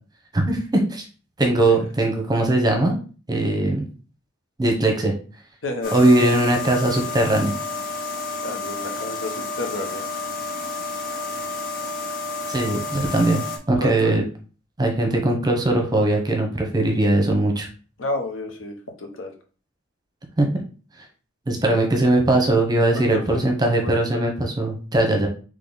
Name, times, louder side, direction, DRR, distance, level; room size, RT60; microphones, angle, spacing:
voice 1, 0.3-1.0 1.4-3.0 3.3-3.8 4.6-5.1 5.9-7.5 12.5-13.4 13.7-14.2 14.8-17.7 20.4-20.5 21.5-25.3, right 2 dB, 20° right, 2 dB, 0.9 m, -20 dB
voice 2, 5.6-5.9 8.4-10.1 13.8-14.2 18.0-19.3 21.7-21.8 22.9-24.2, left 2 dB, 75° left, 4 dB, 1.0 m, -31 dB
sound 1, 5.8-13.6, left 3 dB, 45° left, 1.0 m, -30 dB
3.9 x 3.1 x 3.9 m, 0.37 s
head